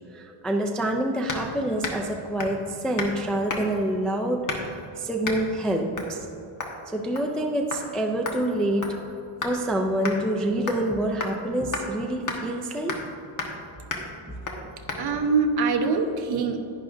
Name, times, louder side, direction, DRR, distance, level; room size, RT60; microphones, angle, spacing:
voice 1, 0.1-6.2 6.9-8.8 9.4-13.0, right 1 dB, ahead, 1 dB, 0.3 m, -27 dB
sound 1, 1.3-1.5 1.8-2.1 2.4-2.6 3.0-3.2 3.5-3.8 4.5-4.8 5.2-5.4 6.0-6.1 6.6-6.8 7.2-7.4 7.7-7.8 8.3-9.6 10.0-10.2 10.7-10.9 11.2-11.4 11.7-11.9 12.3-12.4 12.9-13.1 13.4-13.6 13.9-14.1 14.5-14.6 14.9-15.0, left 4 dB, 40° left, 1.2 m, -32 dB
voice 2, 15.0-16.6, right 4 dB, 50° right, 4 dB, 1.0 m, -24 dB
10.5 x 10.5 x 2.6 m, 2.8 s
cardioid pair, 145°, 50 cm